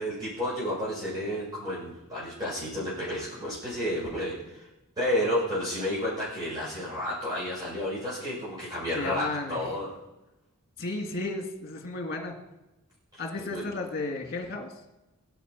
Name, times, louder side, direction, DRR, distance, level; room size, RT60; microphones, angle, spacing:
voice 1, 0.0-4.6 5.0-9.9 13.5-13.6, equal, 20° right, -10 dB, 7.0 m, -31 dB
voice 2, 8.9-9.6 10.8-12.3 13.2-14.7, left 2 dB, 45° left, 2 dB, 2.3 m, -33 dB
23.5 x 8.0 x 5.4 m, 0.99 s
head